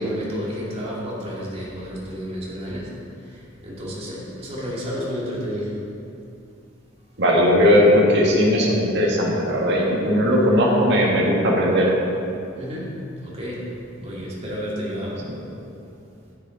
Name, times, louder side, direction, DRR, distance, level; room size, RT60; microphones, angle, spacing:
voice 1, 0.0-2.9 3.2-5.7 12.5-12.9 13.2-13.6 14.0-15.2, equal, 30° right, -6 dB, 2.4 m, -31 dB
voice 2, 7.2-11.9, equal, 60° right, -3 dB, 1.7 m, -18 dB
9.6 x 9.6 x 3.9 m, 2.6 s
head